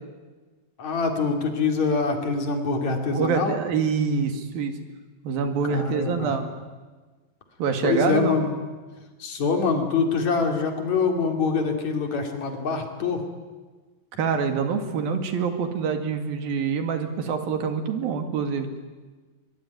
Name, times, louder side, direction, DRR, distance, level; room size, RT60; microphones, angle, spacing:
voice 1, 0.8-3.6 5.7-6.3 7.8-8.6 9.2-13.2, left 4 dB, 50° left, 4 dB, 3.9 m, -25 dB
voice 2, 3.1-4.7 5.2-6.5 7.6-8.4 14.2-18.7, right 5 dB, 75° right, 6 dB, 4.0 m, -25 dB
23.0 x 23.0 x 9.6 m, 1.3 s
omnidirectional pair, 4.3 m